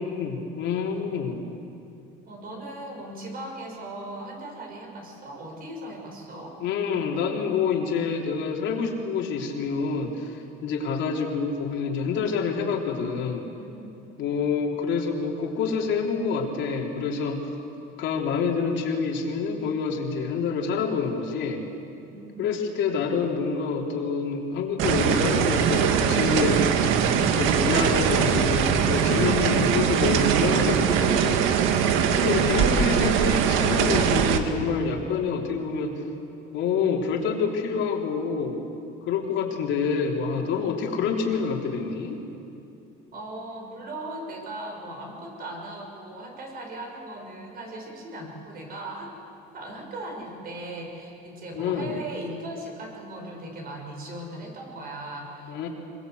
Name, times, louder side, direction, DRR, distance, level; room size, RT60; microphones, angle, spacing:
voice 1, 0.0-1.4 6.6-13.5 14.2-17.4 18.0-21.6 22.4-26.6 27.2-31.8 32.1-36.1 36.5-38.6 39.1-42.2 51.5-52.0 55.5-55.7, left 5 dB, 60° left, 0 dB, 3.5 m, -27 dB
voice 2, 2.3-6.5 13.6-14.3 22.1-23.0 43.1-49.1 49.5-55.7, right 1 dB, 45° right, 1 dB, 6.2 m, -38 dB
sound 1, 24.8-34.4, right 8 dB, 70° right, 1.7 m, -22 dB
24.5 x 22.5 x 8.0 m, 2.8 s
cardioid pair, 135°, 21 cm